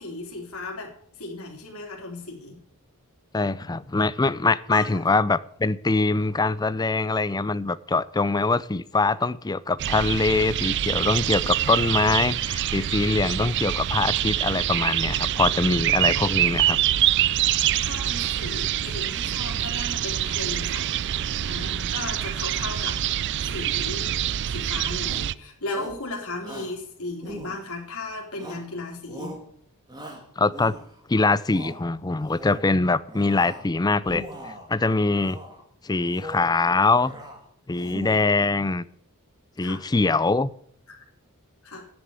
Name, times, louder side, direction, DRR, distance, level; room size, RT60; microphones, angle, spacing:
voice 1, 0.0-2.6 4.7-5.1 17.8-20.9 21.5-23.0 23.4-24.1 24.5-29.4 39.6-39.8 40.9-41.0 41.6-41.9, left 2 dB, 75° left, 0 dB, 3.3 m, -36 dB
voice 2, 3.3-16.8 30.4-30.8 31.1-35.4 35.8-37.1 37.7-38.8 39.6-40.5, left 3 dB, 20° left, 17 dB, 0.5 m, -23 dB
sound 1, 9.8-25.3, right 11 dB, 50° right, 0.4 m, -25 dB
Shout, 25.0-25.4 25.7-26.1 26.4-26.8 27.2-27.9 28.4-28.8 29.1-29.5 29.9-31.0 31.4-31.8 32.2-32.7 33.1-33.7 34.0-34.7 35.2-35.6 36.0-36.5 36.9-37.4 37.7-38.4, equal, 20° right, 2.2 m, -40 dB
10.5 x 7.5 x 8.1 m, 0.63 s
head